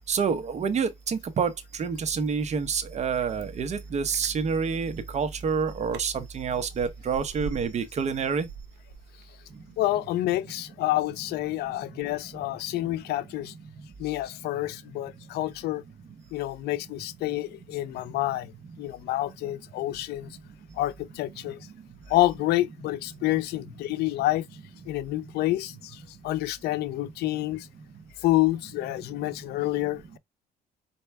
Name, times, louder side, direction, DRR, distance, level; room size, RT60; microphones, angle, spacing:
voice 1, 0.1-1.5 1.8-8.5, right 6 dB, 40° right, 0.9 m, -28 dB
Chewing mastication, 3.8-4.3 5.0-5.1 5.3-5.5 5.9-6.0 6.3-7.9 8.2-9.4 9.8-9.9, right 7 dB, 80° right, 0.9 m, -42 dB
voice 2, 9.8-13.5 14.0-15.8 16.3-18.5 18.8-20.4 20.8-21.6 22.1-24.4 24.9-27.7 28.2-30.2, left 16 dB, 75° left, 0.5 m, -28 dB
4.5 x 2.8 x 3.4 m
cardioid pair, 110°, 17 cm